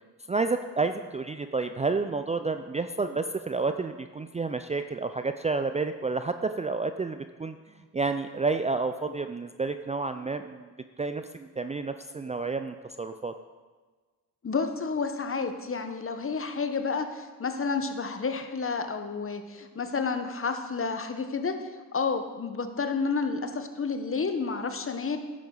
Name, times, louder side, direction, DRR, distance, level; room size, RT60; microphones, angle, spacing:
voice 1, 0.3-7.6 7.9-10.7 11.0-13.3, right 4 dB, 20° right, 9 dB, 0.4 m, -30 dB
voice 2, 14.4-25.2, left 4 dB, 35° left, 7 dB, 1.2 m, -30 dB
10.5 x 8.4 x 3.9 m, 1.4 s
supercardioid pair, 50°, 37 cm